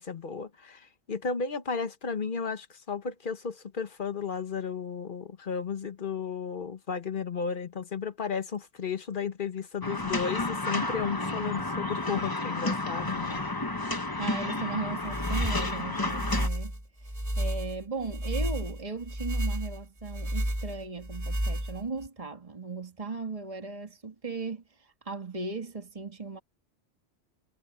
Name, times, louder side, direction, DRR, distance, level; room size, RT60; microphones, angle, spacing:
voice 1, 0.0-13.4, left 6 dB, 50° left, 1.3 m, -34 dB
sound 1, 9.8-16.5, left 2 dB, 20° left, 1.1 m, -31 dB
voice 2, 14.2-26.4, right 4 dB, 30° right, 2.2 m, -37 dB
sound 2, 15.0-22.1, right 1 dB, 15° right, 5.3 m, -32 dB
omnidirectional pair, 1.1 m